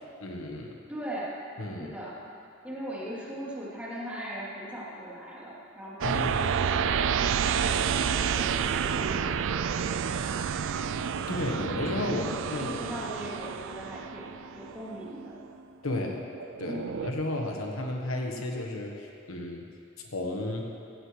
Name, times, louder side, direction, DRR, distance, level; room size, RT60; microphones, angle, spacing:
voice 1, 0.2-0.7 1.6-1.9 6.0-6.4 11.3-12.2 12.5-12.8 15.8-16.2 16.6-19.6 20.1-20.7, left 1 dB, 70° left, 1 dB, 1.3 m, -33 dB
voice 2, 0.9-1.3 1.8-2.1 2.6-10.7 12.1-15.4 16.6-16.9, equal, 5° right, -8 dB, 3.2 m, -40 dB
sound 1, 6.0-15.6 16.1-17.1, right 7 dB, 65° right, 0.4 m, -29 dB
16.5 x 15.5 x 3.3 m, 2.5 s
head